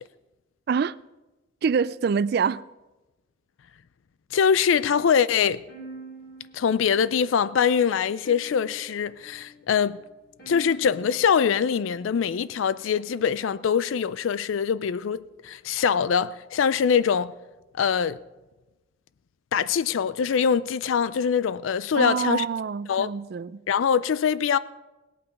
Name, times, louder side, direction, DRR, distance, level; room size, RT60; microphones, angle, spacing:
voice 1, 1.6-2.6 21.9-23.6, right 6 dB, 55° right, 0.3 m, -25 dB
voice 2, 4.3-5.6 6.5-10.0 10.5-17.3 17.8-18.2 19.5-22.4 22.9-23.1 23.7-24.6, left 7 dB, 85° left, 0.4 m, -23 dB
sound 1, 5.7-12.8, right 3 dB, 55° left, 3.7 m, -46 dB
18.0 x 8.6 x 5.3 m
head